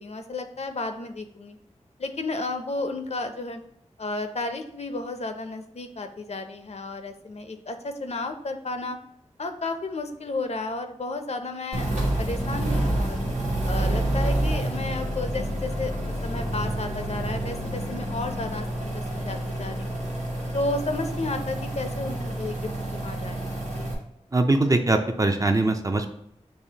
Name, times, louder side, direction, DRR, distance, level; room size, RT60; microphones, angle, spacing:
voice 1, 0.0-1.6 2.0-3.6 4.0-9.0 9.4-13.2 13.6-19.9 20.5-23.4 23.8-23.9, left 2 dB, 65° left, 7 dB, 0.5 m, -32 dB
sound 1, 11.7-23.9, right 1 dB, 80° right, 1.1 m, -28 dB
voice 2, 24.3-26.1, right 2 dB, 30° right, 6 dB, 0.5 m, -22 dB
6.8 x 2.8 x 2.8 m, 0.71 s
wide cardioid pair, 75°, 12 cm